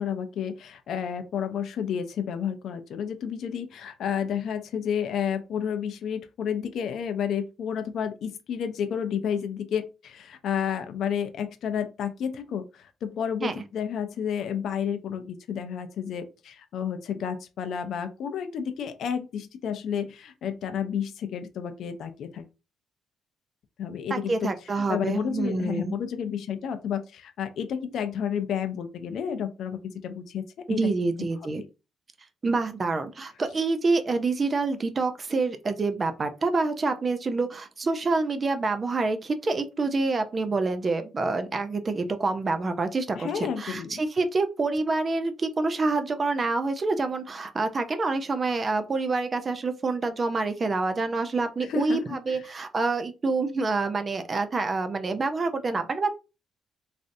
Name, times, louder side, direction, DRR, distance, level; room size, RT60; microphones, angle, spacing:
voice 1, 0.0-22.5 23.8-24.5 24.9-30.4 30.7-30.9 43.2-43.9 51.6-52.4, left 8 dB, 65° left, 0.4 m, -31 dB
voice 2, 24.1-25.9 30.8-31.6 32.4-56.1, right 3 dB, 30° right, 0.4 m, -27 dB
3.2 x 2.5 x 2.6 m
cardioid pair, 145°, 0 cm